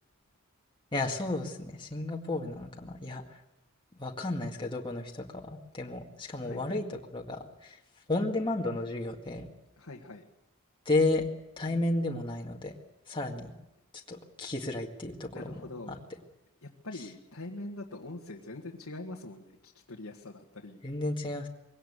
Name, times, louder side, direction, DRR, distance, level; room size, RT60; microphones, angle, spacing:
voice 1, 0.9-3.2 3.9-6.9 7.1-7.8 8.1-9.5 10.9-11.2 11.6-12.7 13.1-13.5 14.1-16.0 20.8-21.5, left 2 dB, 25° left, 0 dB, 2.0 m, -32 dB
voice 2, 6.4-6.8 9.8-10.2 15.3-15.9 16.6-20.8, left 2 dB, 85° left, -1 dB, 1.9 m, -43 dB
22.5 x 17.5 x 8.2 m, 0.91 s
head